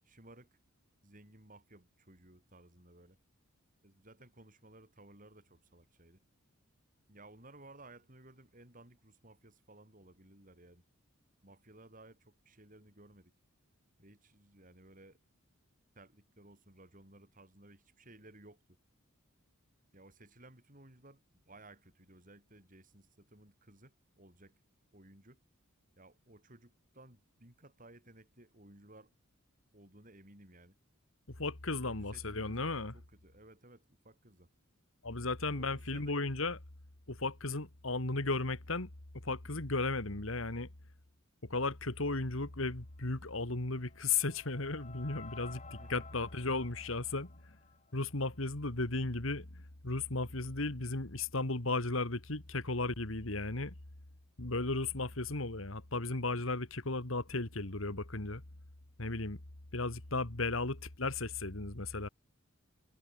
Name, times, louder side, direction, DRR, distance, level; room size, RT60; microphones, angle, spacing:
voice 1, 0.0-0.6 1.0-3.2 3.8-6.2 7.1-10.8 11.4-13.3 14.0-15.2 15.9-18.8 19.9-24.5 24.9-25.4 26.0-29.1 29.7-30.8 31.8-34.5 35.5-36.4 45.8-46.2 60.4-60.5, right 2 dB, 40° right, 7.7 m, -58 dB
voice 2, 31.4-32.9 35.0-36.6 37.1-38.9 39.2-40.7 41.5-47.3 47.9-53.7 54.4-58.4 59.0-59.4 59.7-62.1, left 3 dB, 65° left, 2.2 m, -35 dB
sound 1, 43.3-48.5, left 5 dB, 35° left, 7.1 m, -54 dB
head